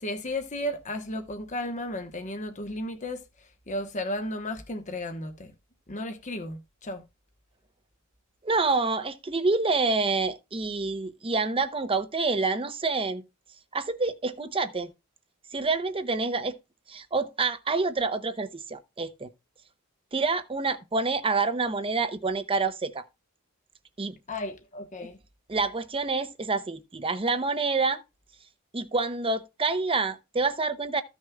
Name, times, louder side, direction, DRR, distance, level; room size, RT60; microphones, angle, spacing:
voice 1, 0.0-3.2 3.7-5.5 5.9-7.0 24.3-25.2, left 1 dB, 35° left, 1.1 m, -34 dB
voice 2, 8.4-13.2 13.7-14.9 15.5-16.6 16.9-19.3 20.1-23.0 24.0-24.2 25.5-28.0 28.7-31.0, right 3 dB, 25° right, 0.8 m, -27 dB
14.5 x 6.4 x 2.3 m
head